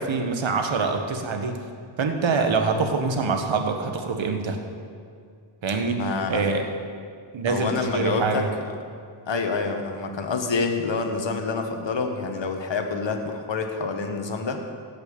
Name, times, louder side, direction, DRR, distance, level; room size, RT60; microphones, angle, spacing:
voice 1, 0.0-1.6 2.0-4.6 5.6-6.6 7.3-8.5, right 4 dB, 70° right, 5 dB, 1.5 m, -25 dB
voice 2, 5.9-6.4 7.5-8.5 9.3-14.6, left 4 dB, 65° left, 5 dB, 1.5 m, -27 dB
16.0 x 6.0 x 6.9 m, 2.2 s
wide cardioid pair, 80°, 48 cm